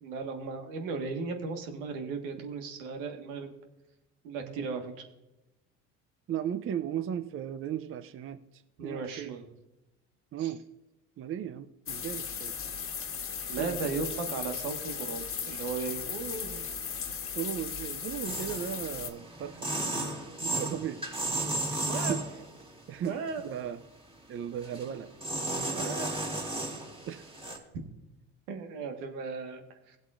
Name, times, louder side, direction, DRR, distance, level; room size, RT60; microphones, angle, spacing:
voice 1, 0.0-3.5 4.2-4.9 8.8-9.4 10.4-10.5 13.5-16.7 21.9-22.2 23.0-23.4 25.7-26.1 28.5-30.0, right 4 dB, 85° right, 5 dB, 1.6 m, -36 dB
voice 2, 6.3-9.4 10.3-10.6 11.2-12.5 13.6-13.9 17.3-19.7 20.4-21.1 21.7-21.8 22.1-22.2 22.9-23.8 24.3-25.1 27.1-27.3, right 9 dB, 35° right, 11 dB, 0.6 m, -36 dB
sound 1, 11.9-19.1, left 6 dB, 35° left, 1.5 m, -37 dB
sound 2, 18.2-22.7 23.1-23.7 24.6-24.9 25.2-27.6, right 1 dB, 15° right, 2.1 m, -34 dB
16.5 x 7.9 x 2.5 m, 0.96 s
supercardioid pair, 85°, 36 cm